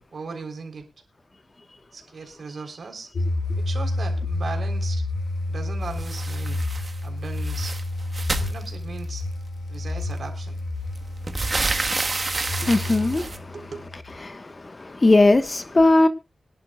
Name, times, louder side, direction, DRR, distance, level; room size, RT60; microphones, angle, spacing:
voice 1, 0.1-0.9 1.9-3.1 3.6-5.0 5.5-6.6 7.0-7.8 8.4-9.3 9.7-10.6 13.5-13.8, right 4 dB, 65° right, 3.6 m, -37 dB
sound 1, 3.1-14.1, left 2 dB, 85° left, 1.5 m, -29 dB
sound 2, 6.0-7.0 7.3-9.2 10.2-10.3 10.7-13.4, right 3 dB, 40° right, 1.4 m, -29 dB
voice 2, 12.6-13.5 14.2-16.1, left 2 dB, 35° left, 1.2 m, -19 dB
24.0 x 11.0 x 2.3 m
wide cardioid pair, 90°, 0 cm